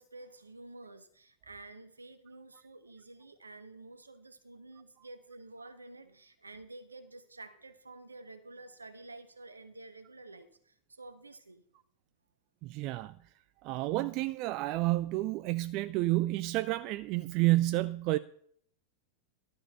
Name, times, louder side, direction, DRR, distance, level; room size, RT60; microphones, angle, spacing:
voice 1, 0.0-11.6, right 2 dB, 80° right, 1.0 m, -50 dB
voice 2, 12.6-13.1 13.6-18.2, right 18 dB, 40° right, 0.3 m, -30 dB
12.0 x 5.4 x 6.7 m
figure-of-eight pair, 90°, 0 cm